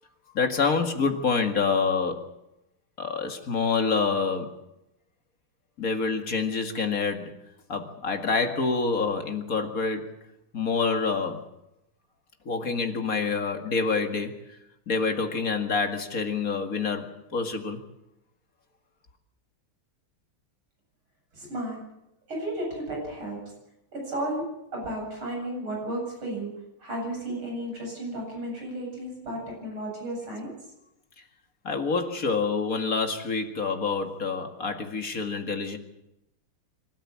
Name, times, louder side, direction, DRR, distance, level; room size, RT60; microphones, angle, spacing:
voice 1, 0.3-2.2 3.0-4.5 5.8-7.3 7.7-10.1 10.5-11.5 12.5-14.4 14.9-17.8 31.6-35.8, left 4 dB, 45° left, 5 dB, 2.3 m, -27 dB
voice 2, 21.3-21.8 22.3-23.4 23.9-26.5 26.8-30.5, right 1 dB, 75° right, -1 dB, 9.0 m, -33 dB
25.5 x 13.5 x 8.7 m, 0.88 s
omnidirectional pair, 2.3 m